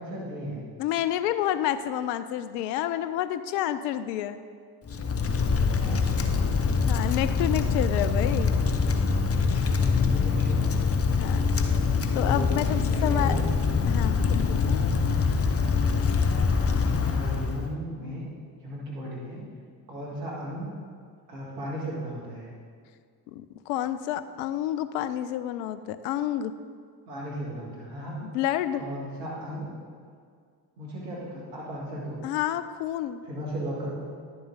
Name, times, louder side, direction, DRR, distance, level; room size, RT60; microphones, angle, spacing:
voice 1, 0.0-0.6 5.7-6.7 9.8-10.8 12.1-13.5 14.8-15.2 17.0-18.3 18.6-19.4 19.9-20.7 21.3-22.5 27.1-28.3 28.8-29.7 30.8-32.2 33.2-34.1, equal, 90° right, -5 dB, 1.9 m, -36 dB
voice 2, 0.8-4.4 6.9-8.5 11.2-11.4 12.1-13.3 13.9-14.8 23.3-26.5 28.2-28.8 32.2-33.2, left 11 dB, 80° left, 13 dB, 0.5 m, -29 dB
Wind, 4.9-17.7, left 5 dB, 30° left, 0.8 m, -24 dB
10.5 x 6.8 x 3.9 m, 2.1 s
hypercardioid pair, 45°, 48 cm